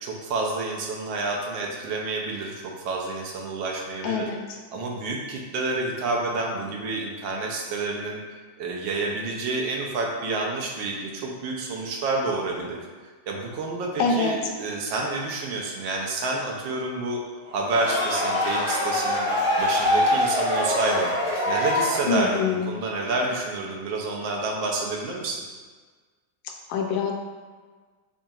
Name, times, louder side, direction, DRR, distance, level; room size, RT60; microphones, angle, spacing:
voice 1, 0.0-4.3 4.7-8.2 8.6-12.8 13.3-17.2 17.5-19.3 19.6-21.1 21.5-25.4, right 3 dB, 90° right, -1 dB, 1.3 m, -29 dB
voice 2, 4.0-4.4 14.0-14.3 22.1-22.6 26.7-27.1, left 4 dB, 85° left, 2 dB, 1.3 m, -24 dB
sound 1, 17.5-22.5, left 1 dB, 30° left, 1.2 m, -24 dB
5.3 x 2.8 x 2.3 m, 1.4 s
omnidirectional pair, 1.9 m